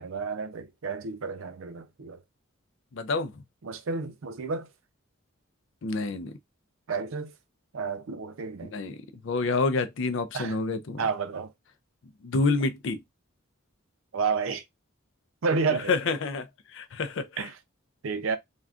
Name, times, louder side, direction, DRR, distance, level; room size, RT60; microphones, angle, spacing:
voice 1, 0.0-2.2 3.6-4.7 6.9-7.3 7.7-8.7 10.3-10.6 11.0-11.5 14.1-14.6 15.4-15.9 17.4-17.5 18.0-18.4, right 5 dB, 80° right, 0.5 m, -30 dB
voice 2, 2.9-3.3 5.8-6.3 8.6-11.1 12.2-13.0 15.7-16.5 16.7-17.5, left 3 dB, 65° left, 0.4 m, -28 dB
3.5 x 2.2 x 2.4 m
head